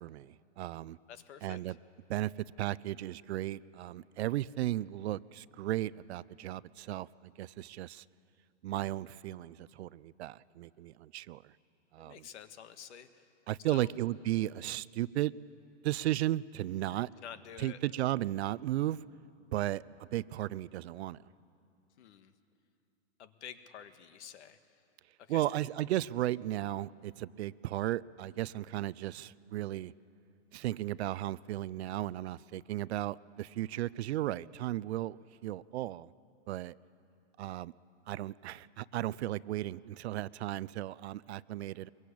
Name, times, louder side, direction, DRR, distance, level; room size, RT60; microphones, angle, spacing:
voice 1, 0.0-1.0 1.4-1.8 2.1-2.3 2.6-7.1 7.4-8.0 8.6-11.4 11.9-12.3 13.5-15.3 15.8-17.1 17.6-19.0 19.5-19.8 20.1-21.2 25.3-29.9 30.5-36.1 36.5-36.7 37.4-37.7 38.1-41.9, right 14 dB, 65° right, 20 dB, 0.6 m, -35 dB
voice 2, 1.1-1.6 12.0-13.3 13.7-13.9 17.2-17.8 22.0-22.3 23.2-24.6 25.2-25.4, left 9 dB, 70° left, 10 dB, 1.7 m, -49 dB
23.5 x 22.0 x 8.5 m, 2.7 s
hypercardioid pair, 150°, 36 cm